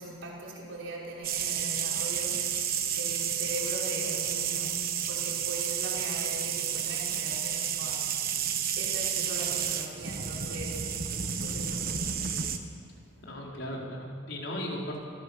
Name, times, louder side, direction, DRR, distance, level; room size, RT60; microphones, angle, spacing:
voice 1, 0.0-4.7 5.1-8.4 8.8-10.9 11.4-11.9, right 1 dB, 75° right, -4 dB, 5.6 m, -40 dB
sound 1, 1.2-12.6, right 8 dB, 45° right, 1.3 m, -31 dB
voice 2, 13.2-15.0, equal, 65° left, -2 dB, 4.6 m, -36 dB
25.0 x 18.0 x 7.0 m, 2.4 s
head